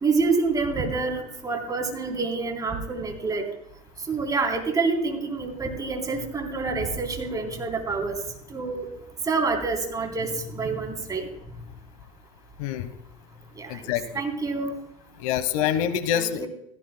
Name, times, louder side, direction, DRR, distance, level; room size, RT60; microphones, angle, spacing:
voice 1, 0.0-3.4 4.1-8.2 8.5-8.9 9.3-11.2 13.6-13.8 14.1-14.7 16.1-16.5, right 4 dB, 20° right, 2 dB, 3.5 m, -27 dB
voice 2, 13.7-14.0 15.2-16.5, left 10 dB, 80° left, 13 dB, 1.1 m, -25 dB
17.0 x 15.5 x 2.2 m, 0.77 s
supercardioid pair, 120°, 18 cm